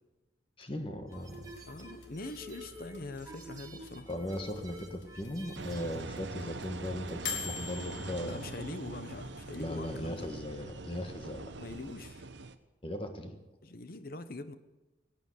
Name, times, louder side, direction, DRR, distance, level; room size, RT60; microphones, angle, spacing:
voice 1, 0.6-1.5 4.1-8.5 9.5-11.5 12.8-13.3, left 1 dB, 30° left, 6 dB, 1.5 m, -38 dB
sound 1, 1.1-10.2, left 6 dB, 80° left, 2.2 m, -46 dB
sound 2, 1.1-6.0, right 1 dB, 20° right, 1.9 m, -49 dB
voice 2, 1.7-4.1 8.2-10.3 11.6-12.3 13.6-14.5, left 2 dB, 55° left, 11 dB, 1.0 m, -43 dB
Engine, 5.5-12.5, right 3 dB, 80° right, 0.9 m, -43 dB
18.0 x 9.1 x 8.0 m, 1.1 s
head